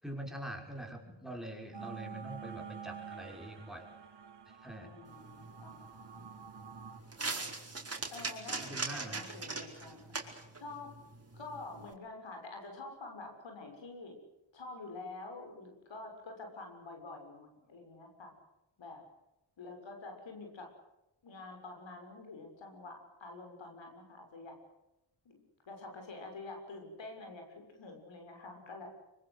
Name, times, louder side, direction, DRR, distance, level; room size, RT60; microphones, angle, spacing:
voice 1, 0.0-3.9 4.5-4.9 8.6-9.3, right 1 dB, ahead, 3 dB, 5.9 m, -44 dB
voice 2, 1.7-2.2 4.8-6.3 8.1-10.2 10.6-10.9 11.3-14.2 14.5-18.3 18.8-19.0 19.6-20.7 21.2-24.6 25.2-25.4 25.7-28.9, left 3 dB, 80° left, 3 dB, 6.7 m, -47 dB
sound 1, 1.7-7.0, right 7 dB, 65° right, 2.4 m, -48 dB
sound 2, 5.1-11.9, right 3 dB, 30° right, 4.8 m, -42 dB
24.5 x 24.5 x 8.3 m, 0.92 s
cardioid pair, 70°, 44 cm